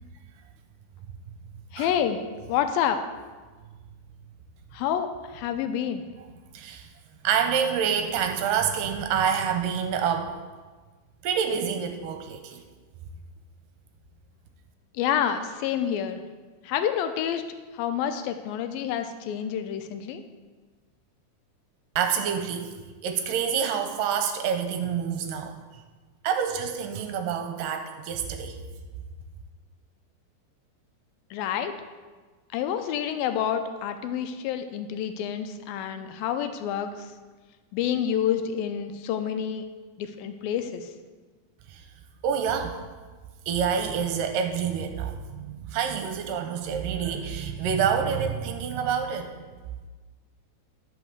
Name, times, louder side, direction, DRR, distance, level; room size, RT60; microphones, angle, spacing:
voice 1, 1.7-2.2 2.5-3.0 4.7-6.0 14.9-16.2 16.6-17.5 17.7-20.2 31.3-31.8 32.5-37.1 37.7-39.6 40.0-40.9, left 9 dB, 85° left, 8 dB, 2.4 m, -28 dB
voice 2, 6.5-6.9 7.2-10.4 11.2-12.6 22.0-22.7 23.0-25.6 26.2-28.6 41.7-41.8 42.2-42.8 43.5-49.3, right 7 dB, 75° right, 5 dB, 2.3 m, -27 dB
11.0 x 5.6 x 6.6 m, 1.4 s
omnidirectional pair, 4.2 m